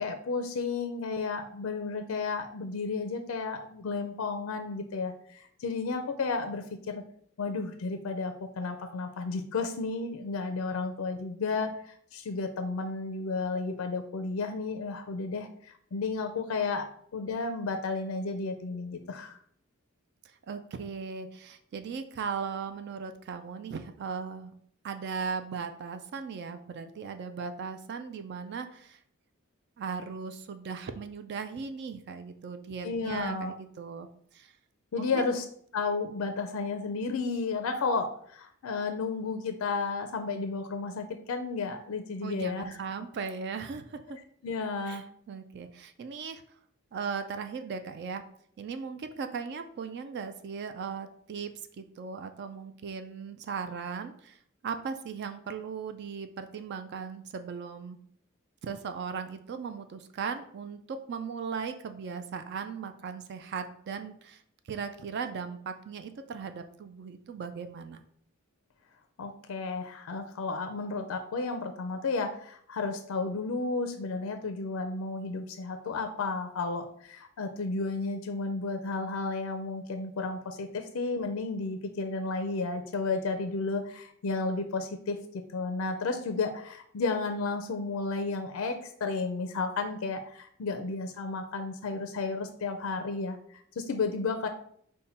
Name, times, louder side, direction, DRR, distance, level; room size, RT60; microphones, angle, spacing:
voice 1, 0.0-7.0 7.4-19.4 32.8-33.5 34.9-35.4 35.7-42.8 44.4-45.0 69.2-85.2 85.5-94.5, left 4 dB, 80° left, 7 dB, 0.4 m, -32 dB
voice 2, 20.2-24.5 24.8-29.0 29.8-34.1 34.3-34.5 35.0-35.3 42.2-44.2 44.9-46.4 46.9-48.2 48.6-58.0 58.6-64.4 64.7-68.0, right 5 dB, 55° right, 8 dB, 0.4 m, -38 dB
5.4 x 2.2 x 4.2 m, 0.64 s
head